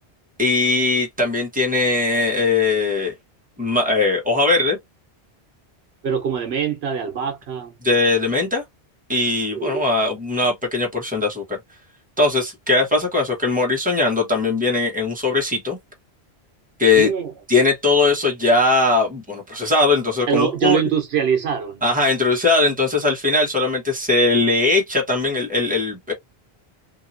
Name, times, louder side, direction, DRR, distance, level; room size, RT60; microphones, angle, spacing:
voice 1, 0.4-3.1 3.6-4.8 7.8-8.6 9.1-11.6 12.2-15.8 16.8-17.1 17.5-20.8 21.8-26.1, left 3 dB, 10° right, 1.2 m, -20 dB
voice 2, 6.0-7.7 9.5-9.8 16.9-17.3 20.3-21.8, right 8 dB, 80° right, 1.1 m, -23 dB
2.8 x 2.7 x 2.5 m
omnidirectional pair, 1.1 m